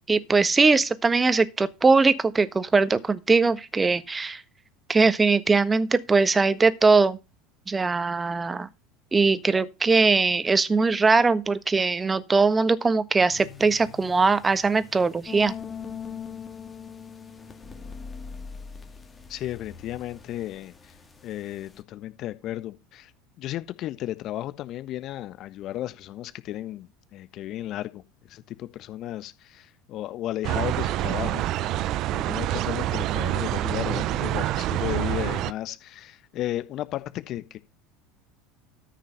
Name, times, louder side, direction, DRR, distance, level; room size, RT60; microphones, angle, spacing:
voice 1, 0.1-4.4 4.9-7.2 7.7-8.7 9.1-15.5, right 4 dB, 20° right, 1.4 m, -21 dB
sound 1, 13.3-21.8, left 6 dB, 25° left, 2.0 m, -42 dB
voice 2, 19.3-21.0 21.2-23.1 23.4-28.0 28.3-37.6, left 13 dB, 50° left, 1.3 m, -34 dB
sound 2, 30.4-35.5, right 14 dB, 50° right, 0.6 m, -27 dB
13.5 x 5.9 x 5.6 m
hypercardioid pair, 75°, 0 cm